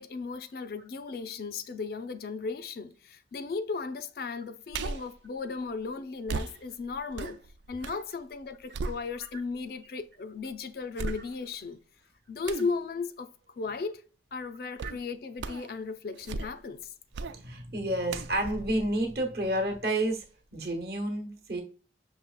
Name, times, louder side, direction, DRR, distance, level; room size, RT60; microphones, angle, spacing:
voice 1, 0.0-7.4 7.7-11.8 12.3-13.3 13.6-14.0 14.3-16.9, left 4 dB, 55° left, 0.4 m, -36 dB
sound 1, 4.7-5.2 6.3-8.1 8.4-9.5 10.0-10.1 11.0-11.6 12.5-12.8 14.8-15.0 15.4-15.7 16.1-16.7 17.1-17.4 18.1-19.8 20.2-20.3, right 4 dB, 75° right, 0.3 m, -37 dB
voice 2, 17.3-20.2 20.5-21.6, right 1 dB, 60° right, 1.0 m, -30 dB
5.6 x 3.1 x 2.2 m
head